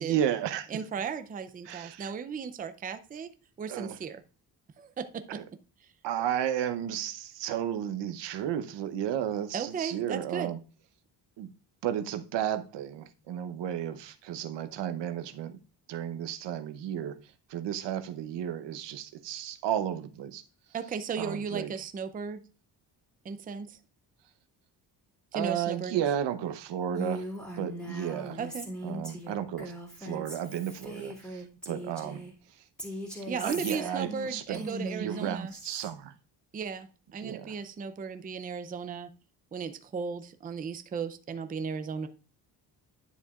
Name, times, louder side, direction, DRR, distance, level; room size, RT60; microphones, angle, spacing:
voice 1, 0.0-0.7 1.6-2.1 3.7-4.0 5.3-5.4 6.0-10.6 11.4-11.5 11.8-15.6 15.9-20.4 21.2-21.7 25.3-27.3 27.6-28.4 28.8-29.7 30.0-32.2 32.5-32.6 33.4-36.1 37.2-37.6, right 10 dB, 80° right, 0.9 m, -33 dB
voice 2, 0.7-3.3 3.6-4.2 4.8-5.4 9.5-10.6 20.7-22.4 23.2-23.8 25.3-26.0 28.4-28.7 33.3-35.5 36.5-39.1 39.5-42.1, right 6 dB, 20° right, 0.4 m, -36 dB
Female speech woman speaking, 26.9-32.3 32.8-35.9, equal, ahead, 2.4 m, -40 dB
10.5 x 7.1 x 2.4 m
cardioid pair, 160°, 42 cm